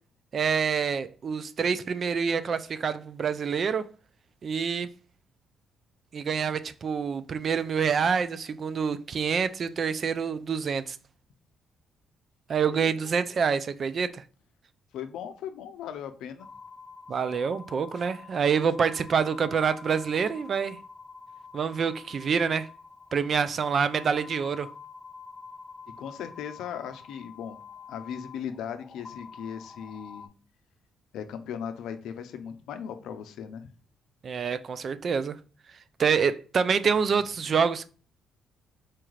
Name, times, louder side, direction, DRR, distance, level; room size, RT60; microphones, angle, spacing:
voice 1, 0.3-3.9 4.4-4.9 6.1-11.0 12.5-14.2 17.1-20.8 21.5-22.7 23.1-24.7 34.2-35.4 36.0-37.9, right 6 dB, 50° right, 0.3 m, -26 dB
voice 2, 12.7-13.1 14.9-16.5 25.9-27.6 27.9-30.3 31.1-33.7, left 8 dB, 80° left, 0.5 m, -38 dB
sound 1, 16.4-30.3, left 5 dB, 30° left, 0.5 m, -47 dB
4.4 x 2.4 x 3.1 m
cardioid pair, 90°, 0 cm